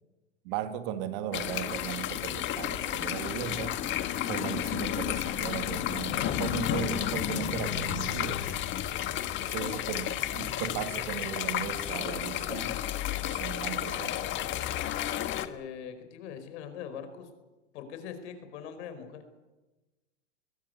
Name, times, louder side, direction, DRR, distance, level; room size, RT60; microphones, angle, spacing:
voice 1, 0.4-3.8 4.2-8.5 9.4-12.8 13.2-14.3, right 9 dB, 45° right, 2.0 m, -37 dB
sound 1, 1.3-15.5, left 11 dB, 30° left, 1.5 m, -32 dB
voice 2, 9.4-9.8 15.4-17.3 17.7-19.2, left 8 dB, 60° left, 4.9 m, -42 dB
22.0 x 18.0 x 9.5 m
hypercardioid pair, 125°, 38 cm